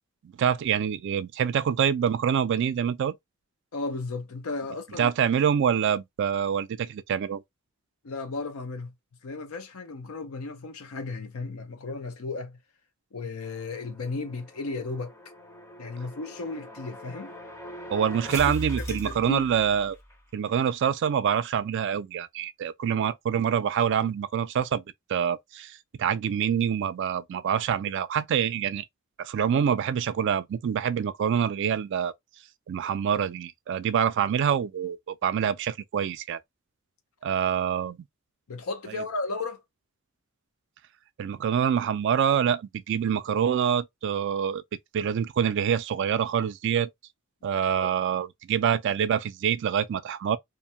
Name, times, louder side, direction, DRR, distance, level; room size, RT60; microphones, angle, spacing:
voice 1, 0.4-3.2 5.0-7.4 17.9-20.0 20.3-24.8 25.1-28.9 29.2-32.1 32.7-36.4 37.2-38.0 38.9-39.0 41.2-44.6 44.9-46.9 47.4-50.4, right 8 dB, 55° right, 0.3 m, -26 dB
voice 2, 3.7-5.1 8.0-8.9 9.2-12.6 13.1-15.2 15.8-17.3 18.3-18.4 18.8-19.4 38.5-39.6 47.8-47.9, left 3 dB, 85° left, 0.6 m, -34 dB
sound 1, 13.4-20.2, equal, 10° left, 0.5 m, -40 dB
2.6 x 2.1 x 2.6 m
head